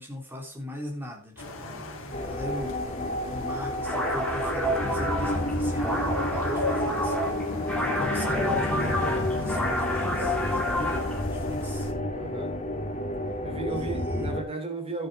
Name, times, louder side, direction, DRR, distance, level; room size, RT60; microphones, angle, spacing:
voice 1, 0.0-11.9 13.7-14.3, left 1 dB, 10° right, 0 dB, 3.5 m, -39 dB
sound 1, 1.4-11.9, left 1 dB, 65° left, 2.3 m, -41 dB
sound 2, 2.1-14.4, left 1 dB, 35° left, 2.0 m, -30 dB
sound 3, 3.8-11.2, equal, 5° left, 3.0 m, -29 dB
voice 2, 12.1-12.5 13.4-15.1, right 3 dB, 30° right, 2 dB, 3.5 m, -34 dB
12.0 x 9.5 x 3.8 m, 0.37 s
head